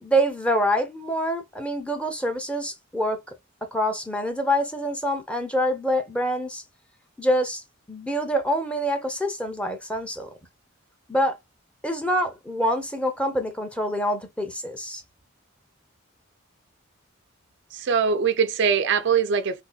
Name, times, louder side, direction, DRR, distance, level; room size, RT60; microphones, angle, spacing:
voice 1, 0.0-3.2 3.6-6.6 7.2-10.3 11.1-11.4 11.8-15.0, equal, 5° left, 0.7 m, -26 dB
voice 2, 17.7-19.6, right 6 dB, 60° right, 0.4 m, -22 dB
3.9 x 2.7 x 2.3 m
head